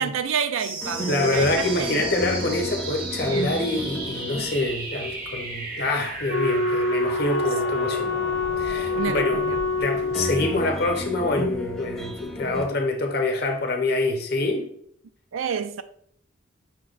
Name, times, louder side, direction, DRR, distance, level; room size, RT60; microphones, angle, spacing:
voice 1, 0.0-2.0 3.3-3.6 8.9-9.6 15.3-15.8, right 6 dB, 85° right, 0.4 m, -29 dB
sound 1, 0.6-11.6, right 2 dB, 45° right, 0.8 m, -35 dB
sound 2, 0.8-12.6, equal, 5° left, 0.5 m, -35 dB
voice 2, 1.1-8.1 8.6-9.4 9.8-14.7, left 2 dB, 55° left, 0.7 m, -26 dB
Wind instrument woodwind instrument, 6.3-10.6, left 3 dB, 70° left, 0.4 m, -26 dB
5.7 x 2.1 x 3.9 m
head